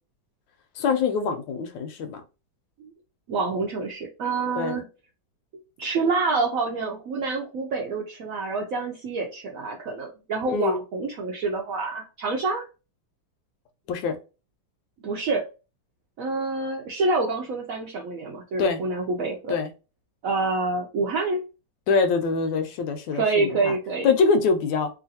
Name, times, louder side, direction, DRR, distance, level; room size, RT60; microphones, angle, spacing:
voice 1, 0.8-2.2 4.5-4.7 10.5-10.8 13.9-14.2 18.6-18.8 19.5-19.7 21.9-23.8 24.0-24.9, left 4 dB, 80° left, 1.3 m, -24 dB
voice 2, 3.3-4.8 5.8-12.6 15.0-15.4 16.2-19.6 20.2-21.4 23.1-24.1, right 3 dB, 75° right, 0.7 m, -27 dB
3.1 x 2.5 x 2.6 m
omnidirectional pair, 2.0 m